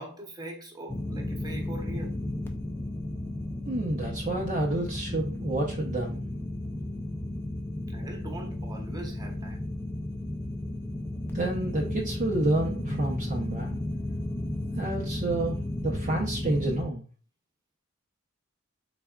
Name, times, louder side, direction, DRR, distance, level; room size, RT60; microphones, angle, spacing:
voice 1, 0.0-2.2 7.9-9.6, right 2 dB, 20° right, 0 dB, 0.9 m, -42 dB
sound 1, 0.9-16.8, left 1 dB, 10° left, 0.4 m, -33 dB
voice 2, 3.7-6.3 11.3-13.8 14.7-17.1, right 2 dB, 40° right, -1 dB, 0.6 m, -29 dB
4.0 x 3.5 x 2.3 m, 0.39 s
head